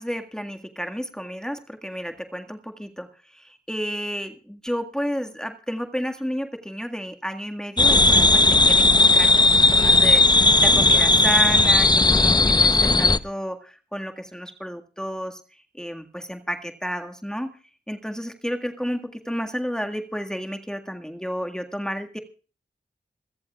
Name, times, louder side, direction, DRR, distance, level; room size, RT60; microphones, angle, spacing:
voice 1, 0.0-9.4 9.7-17.5 17.9-22.2, equal, 5° left, 5 dB, 1.8 m, -31 dB
sound 1, 7.8-13.2, left 2 dB, 25° left, 0.8 m, -16 dB
27.0 x 14.0 x 2.4 m, 0.38 s
cardioid pair, 40°, 17 cm